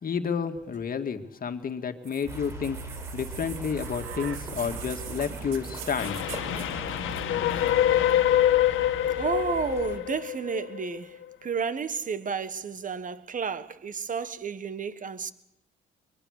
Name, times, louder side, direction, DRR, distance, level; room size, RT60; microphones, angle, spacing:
voice 1, 0.0-2.8 3.1-6.2, left 6 dB, 45° left, 2.1 m, -30 dB
sound 1, 2.0-10.0 11.0-11.1, right 8 dB, 85° right, 2.3 m, -43 dB
sound 2, 2.3-10.0, right 2 dB, 15° right, 5.2 m, -40 dB
Train, 6.0-11.2, left 12 dB, 85° left, 1.6 m, -25 dB
voice 2, 9.2-15.3, right 6 dB, 40° right, 1.4 m, -31 dB
22.5 x 22.0 x 6.6 m
cardioid pair, 90°, 20 cm